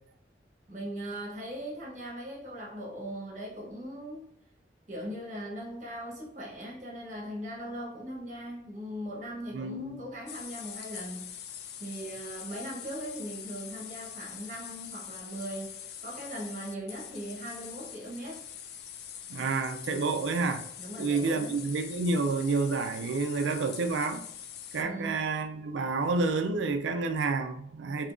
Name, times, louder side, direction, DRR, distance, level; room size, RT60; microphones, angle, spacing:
voice 1, 0.7-4.3 4.9-11.3 11.8-18.4 20.8-21.6 24.8-25.3, right 1 dB, 40° right, 0.9 m, -39 dB
voice 2, 9.5-10.0 19.3-20.6 21.0-24.2 24.7-28.1, right 3 dB, 90° right, 0.4 m, -29 dB
sound 1, 10.3-24.8, left 9 dB, 60° left, 0.3 m, -44 dB
3.6 x 2.8 x 2.4 m
head